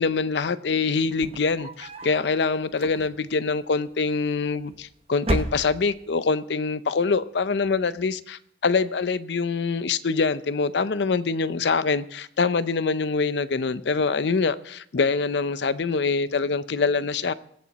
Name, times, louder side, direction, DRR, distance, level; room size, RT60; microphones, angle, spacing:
voice 1, 0.0-17.3, left 4 dB, 70° left, 0.5 m, -24 dB
sound 1, 1.0-2.2 2.7-3.4 4.3-4.8 5.2-6.1, right 1 dB, 35° right, 0.9 m, -31 dB
22.0 x 7.5 x 4.1 m
head